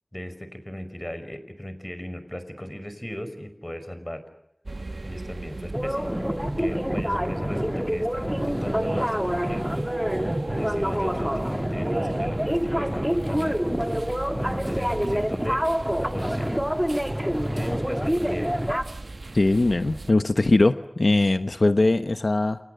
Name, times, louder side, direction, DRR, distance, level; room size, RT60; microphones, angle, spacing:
voice 1, 0.1-4.2 5.0-6.1 6.6-9.6 10.5-13.8 14.3-15.6 16.0-16.5 17.5-18.5, equal, 25° left, 11 dB, 5.5 m, -36 dB
sound 1, 4.6-20.1, right 2 dB, 90° right, 1.1 m, -37 dB
sound 2, 5.7-18.8, equal, 5° right, 1.9 m, -27 dB
voice 2, 19.3-22.6, left 2 dB, 80° left, 9 dB, 1.0 m, -21 dB
29.5 x 28.5 x 6.7 m, 0.80 s
wide cardioid pair, 45°, 0 cm